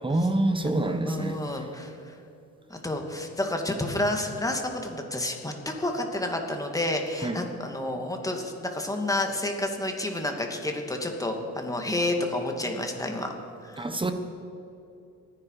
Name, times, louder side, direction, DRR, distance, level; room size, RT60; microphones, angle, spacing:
voice 1, 0.0-1.4 7.2-7.4 13.8-14.1, right 2 dB, 15° right, 6 dB, 1.3 m, -26 dB
voice 2, 1.0-2.2 2.7-13.3 13.6-13.9, left 1 dB, 10° left, 2 dB, 2.5 m, -30 dB
27.5 x 10.0 x 5.0 m, 2.8 s
cardioid pair, 90°, 30 cm